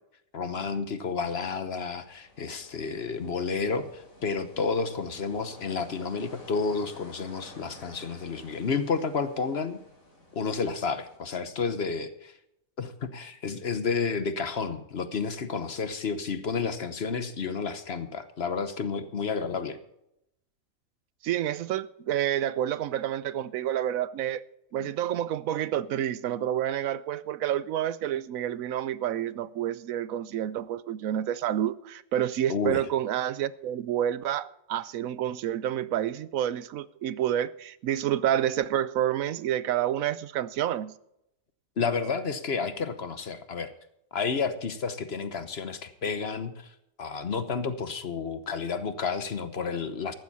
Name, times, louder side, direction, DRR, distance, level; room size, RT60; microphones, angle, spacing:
voice 1, 0.3-9.8 10.3-12.3 12.8-19.8 24.8-24.9 32.5-32.8 41.8-43.7 44.1-46.7 47.0-50.1, left 5 dB, 50° left, 1.2 m, -31 dB
sound 1, 1.8-11.2, left 1 dB, 75° left, 4.4 m, -52 dB
voice 2, 21.2-24.4 24.7-40.9, right 11 dB, 80° right, 1.0 m, -29 dB
14.0 x 12.0 x 4.2 m
omnidirectional pair, 1.5 m